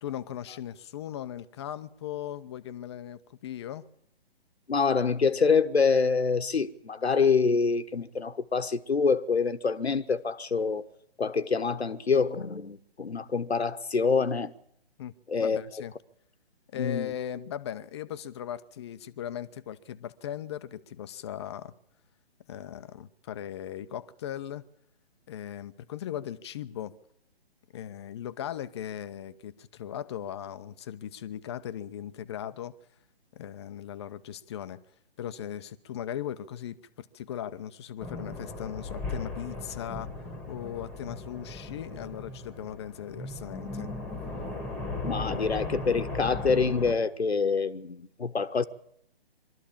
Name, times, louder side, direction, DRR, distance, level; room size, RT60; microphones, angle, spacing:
voice 1, 0.0-3.8 15.0-15.1 15.4-15.9 16.7-21.7 22.5-24.6 25.3-26.9 27.7-32.7 33.3-34.8 35.2-40.1 40.5-43.9, left 10 dB, 25° left, 0.7 m, -38 dB
voice 2, 4.7-10.9 11.2-14.5 15.3-15.6 16.8-17.1 45.0-48.6, left 5 dB, 85° left, 1.3 m, -26 dB
sound 1, 38.0-46.9, left 2 dB, 5° left, 1.6 m, -37 dB
23.5 x 13.0 x 8.6 m
figure-of-eight pair, 140°, 31 cm